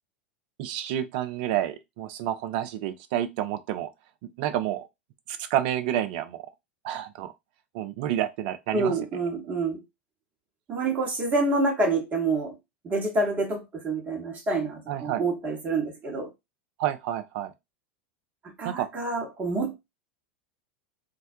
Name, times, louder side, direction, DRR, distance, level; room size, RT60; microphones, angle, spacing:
voice 1, 0.6-3.9 4.4-4.9 5.5-6.4 6.8-7.3 7.7-8.9 14.9-15.2 16.8-17.5 18.6-18.9, right 11 dB, 55° right, 0.4 m, -29 dB
voice 2, 8.7-9.8 10.7-12.5 12.8-16.3 18.6-19.8, right 2 dB, 25° right, 1.0 m, -27 dB
2.3 x 2.1 x 2.6 m
figure-of-eight pair, 85°, 6 cm